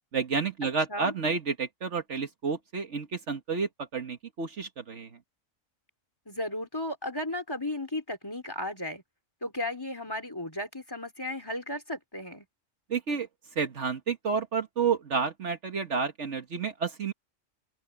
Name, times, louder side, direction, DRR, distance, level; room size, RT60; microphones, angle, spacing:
voice 1, 0.1-5.1 12.9-13.3 13.5-17.1, right 5 dB, 60° right, 1.6 m, -30 dB
voice 2, 6.3-9.0 9.4-12.5, left 1 dB, 15° left, 3.4 m, -35 dB
open air
omnidirectional pair, 1.4 m